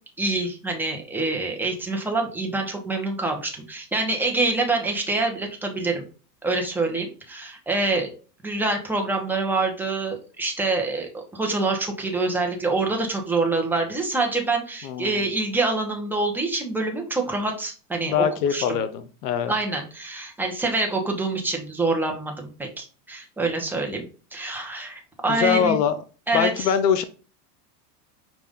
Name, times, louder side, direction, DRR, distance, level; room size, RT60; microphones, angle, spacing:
voice 1, 0.2-6.0 6.4-8.1 8.4-18.2 18.5-18.6 19.5-25.8 26.3-26.7, right 3 dB, 5° right, 1 dB, 0.8 m, -26 dB
voice 2, 14.8-15.2 18.1-19.5 25.3-26.0 26.3-27.0, left 8 dB, 85° left, 11 dB, 0.7 m, -23 dB
5.1 x 2.5 x 3.6 m, 0.36 s
supercardioid pair, 130°, 47 cm